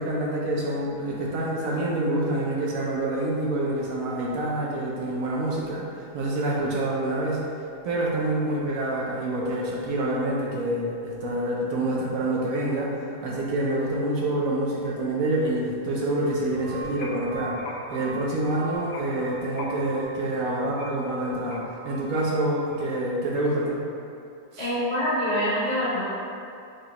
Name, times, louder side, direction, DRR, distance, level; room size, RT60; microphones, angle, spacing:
voice 1, 0.0-7.4 7.8-12.9 13.2-17.6 17.9-23.8 24.5-24.7, right 1 dB, 65° right, -4 dB, 0.9 m, -27 dB
sound 1, 16.4-23.2, equal, 90° left, 1.2 m, -40 dB
voice 2, 24.6-26.0, equal, 60° left, -12 dB, 0.4 m, -25 dB
4.8 x 2.3 x 2.9 m, 2.5 s
omnidirectional pair, 1.7 m